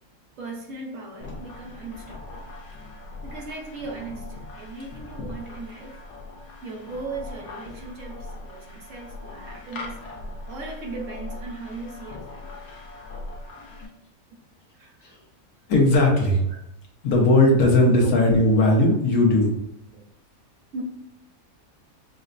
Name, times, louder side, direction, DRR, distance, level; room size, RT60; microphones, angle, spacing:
voice 1, 0.4-2.5 3.2-6.0 6.6-10.0 10.4-12.5 14.3-14.4 14.7-15.0 16.5-16.6 18.0-18.1 19.9-20.0 20.7-20.8, right 3 dB, 65° right, 0 dB, 1.1 m, -38 dB
sound 1, 1.2-13.9, left 2 dB, 60° left, 0.9 m, -40 dB
voice 2, 15.7-16.4 17.0-19.6, left 2 dB, 80° left, 0 dB, 1.4 m, -18 dB
6.1 x 2.1 x 2.5 m, 0.75 s
omnidirectional pair, 1.5 m